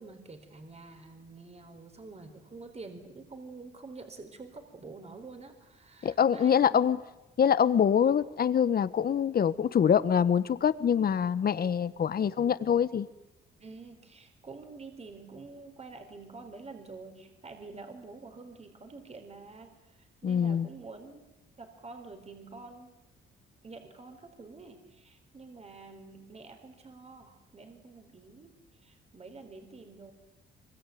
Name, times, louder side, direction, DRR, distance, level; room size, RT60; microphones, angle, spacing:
voice 1, 0.0-6.8 13.6-21.2 21.6-22.9 23.6-28.5 28.8-30.1, right 3 dB, 35° right, 6 dB, 4.1 m, -47 dB
voice 2, 6.0-7.0 7.4-13.1 20.2-20.7, left 8 dB, 50° left, 15 dB, 1.3 m, -25 dB
25.0 x 23.0 x 9.4 m, 0.95 s
cardioid pair, 90°, 20 cm